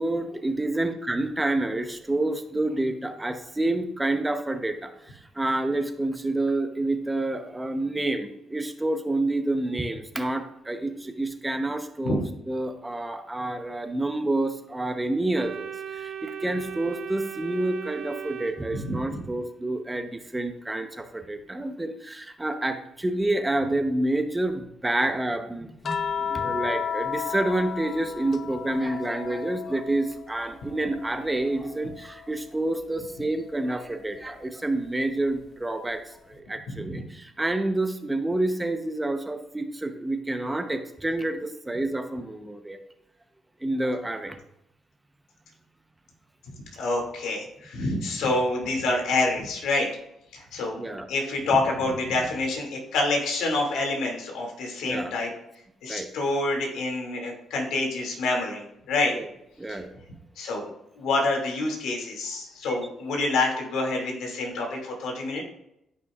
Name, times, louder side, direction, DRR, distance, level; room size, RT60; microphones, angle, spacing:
voice 1, 0.0-42.8 43.6-44.4 50.8-51.1 54.8-55.2 55.9-56.1 59.1-59.3 59.6-59.9 62.6-62.8, right 2 dB, 15° right, 7 dB, 0.9 m, -28 dB
Organ, 15.4-19.3, right 8 dB, 65° right, 0.7 m, -37 dB
voice 2, 18.7-19.2 36.8-37.0 46.7-49.9 50.3-50.8 51.1-55.3 55.8-59.1 60.4-60.7 61.0-65.4, left 2 dB, 85° left, 0 dB, 2.4 m, -27 dB
sound 1, 25.8-30.3 30.7-32.3 33.8-34.0, left 7 dB, 50° left, 0.6 m, -33 dB
13.5 x 5.6 x 2.5 m, 0.80 s
cardioid pair, 90°, 0 cm